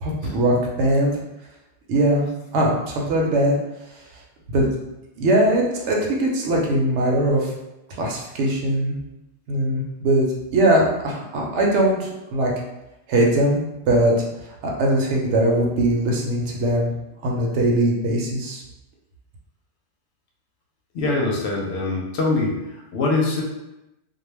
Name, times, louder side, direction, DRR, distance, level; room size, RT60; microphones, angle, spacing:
voice 1, 0.0-1.1 1.9-3.5 4.5-4.7 5.2-7.5 8.0-9.0 9.5-12.5 13.1-14.1 14.6-16.9 17.2-18.6, right 1 dB, 75° right, -1 dB, 0.9 m, -20 dB
voice 2, 20.9-23.4, left 3 dB, 70° left, -1 dB, 0.8 m, -23 dB
2.3 x 2.1 x 3.2 m, 0.94 s
omnidirectional pair, 1.2 m